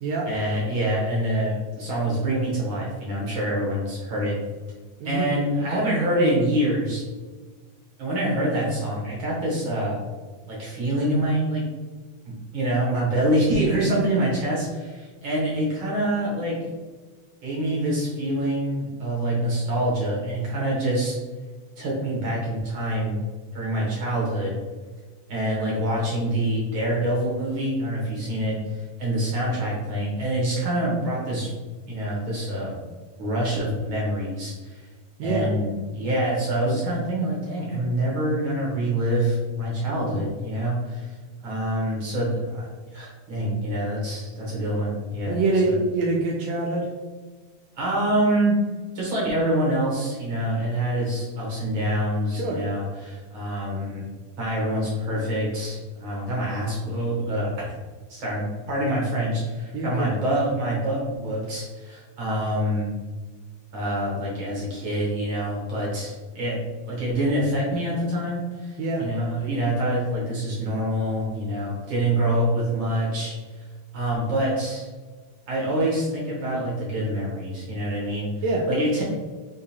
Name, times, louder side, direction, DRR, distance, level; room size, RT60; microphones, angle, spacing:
voice 1, 0.3-4.4 5.0-7.0 8.0-10.1 10.5-11.6 12.5-16.6 17.4-21.2 21.8-23.2 23.5-24.6 25.3-31.5 31.9-32.8 33.2-34.8 35.2-41.1 41.4-45.4 45.7-45.8 47.7-48.6 48.9-54.1 54.4-57.7 58.1-62.9 63.7-66.6 66.9-73.3 73.9-74.9 75.5-78.3 78.7-79.0, right 1 dB, 60° right, -5 dB, 1.4 m, -26 dB
voice 2, 5.0-5.3 35.2-35.5 45.3-46.9 52.3-52.6 59.7-60.1 68.8-69.0 78.4-78.6, right 2 dB, 80° right, -1 dB, 1.7 m, -25 dB
4.5 x 3.7 x 2.7 m, 1.4 s
omnidirectional pair, 3.3 m